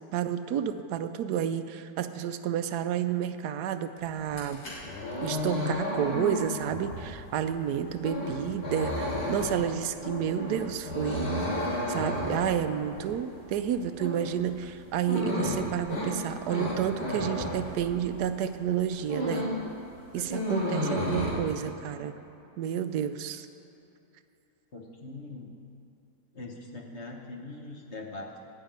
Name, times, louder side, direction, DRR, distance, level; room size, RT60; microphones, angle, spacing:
voice 1, 0.1-4.6 5.2-11.3 11.9-19.5 20.1-22.1 22.6-23.5, right 9 dB, 75° right, 10 dB, 1.1 m, -30 dB
sound 1, 4.2-18.3 18.7-19.6 19.9-21.3, left 1 dB, 85° left, 3.9 m, -32 dB
voice 2, 24.7-25.5 26.3-28.4, left 2 dB, 45° left, 0 dB, 1.4 m, -42 dB
12.5 x 5.9 x 8.9 m, 2.9 s
omnidirectional pair, 1.8 m